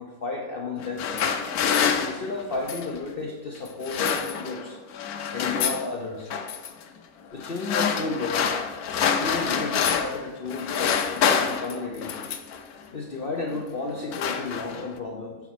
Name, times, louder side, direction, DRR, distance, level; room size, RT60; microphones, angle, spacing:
voice 1, 0.0-1.4 2.0-4.8 5.3-6.3 7.3-8.5 9.1-12.2 12.9-15.4, left 3 dB, 50° left, 1 dB, 0.8 m, -33 dB
sound 1, 0.8-3.0 3.7-4.7 4.9-5.9 6.3-6.7 7.4-10.2 10.5-12.6 13.4-13.6 13.9-15.0, left 7 dB, 90° left, 1.2 m, -26 dB
7.2 x 4.1 x 5.9 m, 1.2 s
omnidirectional pair, 1.5 m